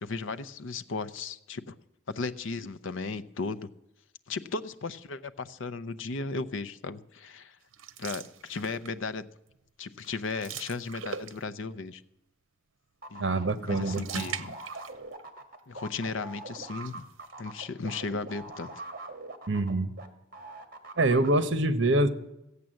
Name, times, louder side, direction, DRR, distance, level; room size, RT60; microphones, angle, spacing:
voice 1, 0.0-1.8 2.1-3.7 4.3-7.6 8.0-9.3 9.8-12.0 13.1-14.6 15.7-17.1 17.4-18.8, left 4 dB, 75° left, 12 dB, 0.7 m, -36 dB
sound 1, 7.7-9.1 9.5-9.7 10.0-11.7 13.5-15.3 15.6-15.7 16.5-17.4, right 7 dB, 80° right, 0.8 m, -42 dB
sound 2, 13.0-20.1 20.3-21.3, right 2 dB, 45° right, 1.6 m, -42 dB
voice 2, 13.2-14.2 19.5-19.9 21.0-22.1, right 2 dB, 65° right, 12 dB, 1.0 m, -25 dB
15.5 x 8.3 x 7.6 m, 0.90 s
head